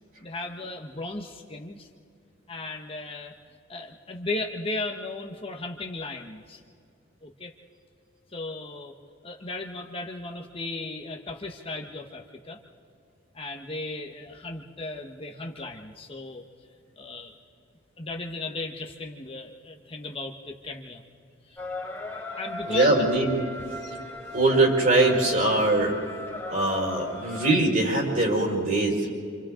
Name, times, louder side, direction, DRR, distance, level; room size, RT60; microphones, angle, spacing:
voice 1, 0.2-1.9 2.5-3.4 3.7-6.6 7.2-7.5 8.3-9.0 9.2-12.6 13.3-16.4 17.0-17.3 18.0-21.0 21.5-21.6 22.4-23.1, left 2 dB, 30° left, 2 dB, 1.2 m, -36 dB
sound 1, 21.6-27.5, left 1 dB, 10° left, 3.0 m, -37 dB
voice 2, 22.7-23.4 23.8-23.9 24.3-25.9 26.5-29.1, right 2 dB, 45° right, -2 dB, 5.1 m, -22 dB
27.5 x 27.5 x 3.8 m, 2.3 s
head